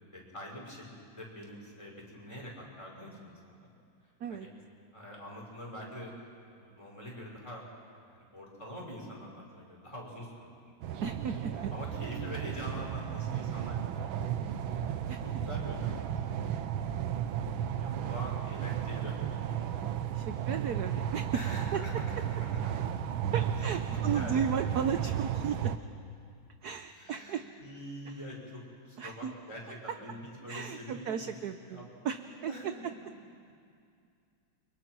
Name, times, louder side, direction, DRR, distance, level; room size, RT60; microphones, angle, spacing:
voice 1, 0.1-3.7 4.3-4.5 4.9-6.1 6.5-7.6 8.1-10.5 11.3-14.1 14.3-14.5 14.9-16.1 17.1-19.8 20.3-20.4 20.9-22.1 22.4-22.8 23.6-24.7 26.9-31.8 32.3-33.1 33.4-33.5, equal, 15° left, -3 dB, 5.8 m, -45 dB
sound 1, 10.8-25.8, right 9 dB, 80° right, 1.7 m, -34 dB
voice 2, 11.0-11.7 15.1-15.2 20.1-21.3 21.7-21.8 23.3-25.7 26.6-27.4 29.0-29.3 30.5-32.9, right 7 dB, 60° right, 9 dB, 1.1 m, -35 dB
29.5 x 24.5 x 6.2 m, 2.4 s
omnidirectional pair, 2.2 m